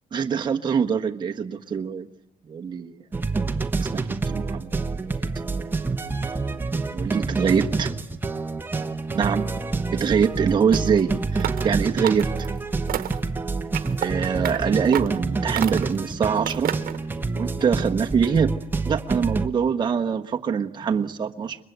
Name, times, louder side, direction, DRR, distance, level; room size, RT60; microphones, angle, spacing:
voice 1, 0.1-2.1 2.5-3.0 3.8-5.7 6.9-7.9 9.1-9.5 9.9-12.5 14.0-16.7 17.3-18.5 18.8-21.6, right 6 dB, 30° right, 3 dB, 1.2 m, -24 dB
sound 1, 3.1-19.5, right 3 dB, 15° right, 0.9 m, -27 dB
sound 2, 11.4-11.7 12.0-12.5 12.9-13.3 13.7-14.1 14.4-14.6 14.9-15.2 15.6-16.0 16.5-17.0, right 11 dB, 80° right, 1.0 m, -29 dB
29.5 x 23.5 x 8.1 m, 0.92 s
wide cardioid pair, 175°, 15 cm